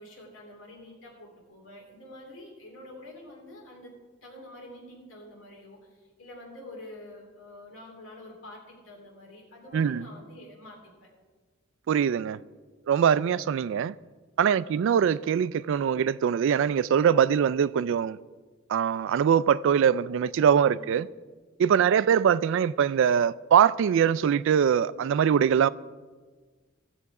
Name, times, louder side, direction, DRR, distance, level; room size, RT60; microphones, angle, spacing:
voice 1, 0.0-3.9 4.2-11.1 14.5-14.9 20.6-21.1 21.7-22.1, left 1 dB, 70° left, 2.9 m, -47 dB
voice 2, 9.7-10.0 11.9-12.4 12.9-14.0 14.4-18.2 18.7-21.1 21.6-25.7, right 8 dB, 65° right, 0.3 m, -22 dB
16.5 x 6.8 x 4.8 m
head